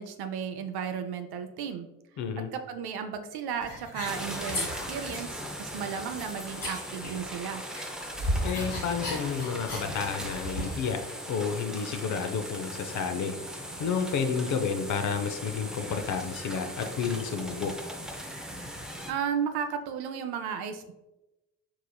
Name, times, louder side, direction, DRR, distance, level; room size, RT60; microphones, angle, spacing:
voice 1, 0.0-1.9 2.5-7.6 19.1-20.9, right 7 dB, 60° right, 7 dB, 0.6 m, -34 dB
voice 2, 2.2-2.5 8.4-17.8, left 6 dB, 45° left, 7 dB, 0.6 m, -31 dB
sound 1, 3.6-5.4 5.7-7.5 7.7-10.8, left 1 dB, 80° left, 1.5 m, -35 dB
sound 2, 4.0-19.1, equal, ahead, 0.5 m, -39 dB
4.8 x 3.0 x 2.2 m, 0.97 s
hypercardioid pair, 45°, 42 cm